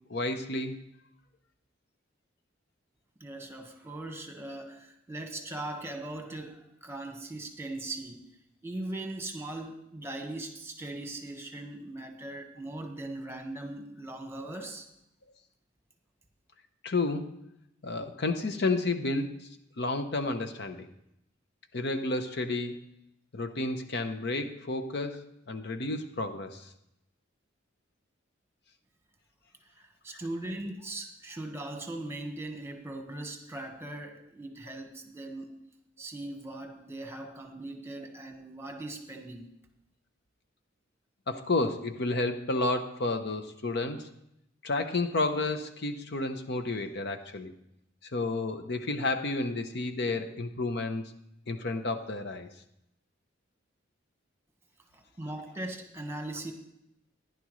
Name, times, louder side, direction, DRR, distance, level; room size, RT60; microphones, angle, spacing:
voice 1, 0.1-0.7 16.8-17.4 17.8-19.5 19.8-20.9 21.7-22.8 23.3-26.7 41.3-44.1 44.6-47.5 48.1-51.0 51.5-52.5, left 2 dB, 60° left, 8 dB, 0.8 m, -31 dB
voice 2, 3.2-8.2 8.6-14.9 29.7-35.6 36.0-39.5 54.9-56.5, right 2 dB, 15° right, 3 dB, 1.3 m, -40 dB
15.0 x 10.5 x 3.1 m, 0.80 s
head